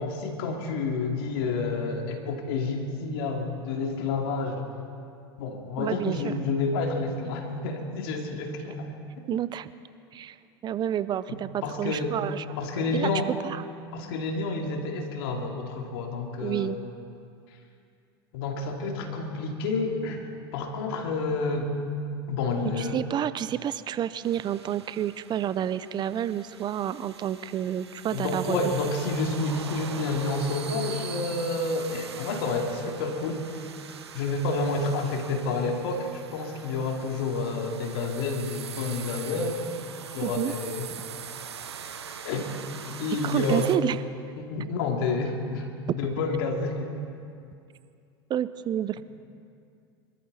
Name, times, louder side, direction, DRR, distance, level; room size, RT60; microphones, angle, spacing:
voice 1, 0.0-4.7 5.4-8.9 9.3-9.4 11.3-12.2 12.6-13.3 13.9-16.8 18.3-21.7 22.3-23.0 28.1-33.6 34.1-39.6 40.1-40.9 42.2-42.5 42.8-43.7 44.4-46.9, left 3 dB, 65° left, 2 dB, 2.6 m, -29 dB
voice 2, 5.8-6.3 9.3-9.7 10.1-10.4 10.6-12.4 12.8-13.1 13.4-13.6 16.4-16.8 22.7-28.6 40.2-40.5 43.2-44.0 48.3-49.0, right 10 dB, 35° right, 15 dB, 0.5 m, -29 dB
sound 1, 24.2-43.8, right 7 dB, 90° right, 0.9 m, -42 dB
24.5 x 13.5 x 4.2 m, 2.4 s
hypercardioid pair, 90°, 13 cm